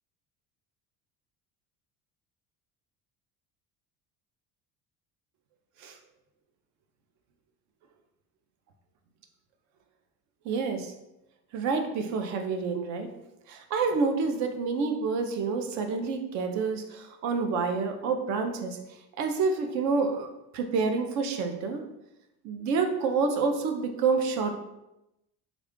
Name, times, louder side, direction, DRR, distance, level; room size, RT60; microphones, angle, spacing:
voice 1, 10.4-10.9 11.5-13.1 13.5-18.8 19.2-20.3 20.5-21.8 22.4-24.5, right 4 dB, 55° right, 6 dB, 0.5 m, -28 dB
3.5 x 2.3 x 3.6 m, 0.90 s
cardioid pair, 180°, 35 cm